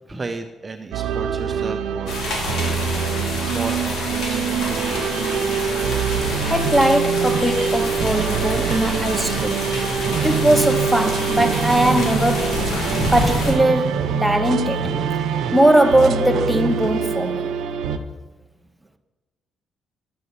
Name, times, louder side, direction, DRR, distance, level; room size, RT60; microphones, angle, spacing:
voice 1, 0.1-5.2, right 3 dB, 30° right, 0.6 m, -34 dB
sound 1, 0.9-18.0, right 6 dB, 85° right, 0.7 m, -25 dB
sound 2, 2.1-13.5, left 2 dB, 75° left, 3.4 m, -28 dB
voice 2, 6.4-9.7 10.2-12.7 13.1-14.9 15.5-17.5, right 1 dB, 5° right, 0.9 m, -20 dB
sound 3, 6.5-17.1, right 9 dB, 65° right, 0.3 m, -29 dB
11.0 x 7.7 x 5.5 m
cardioid pair, 90°, 0 cm